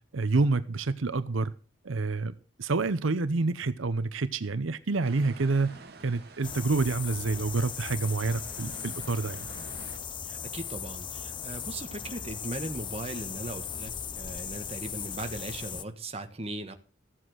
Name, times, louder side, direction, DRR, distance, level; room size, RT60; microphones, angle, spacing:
voice 1, 0.1-1.5 1.8-2.3 2.6-5.7 6.0-9.5, right 3 dB, 80° right, 0.7 m, -28 dB
sound 1, 5.0-10.0, right 3 dB, 50° right, 1.7 m, -50 dB
sound 2, 6.4-15.8, left 7 dB, 25° left, 0.5 m, -38 dB
voice 2, 10.2-16.7, right 2 dB, 30° right, 1.3 m, -38 dB
14.0 x 7.7 x 6.2 m
head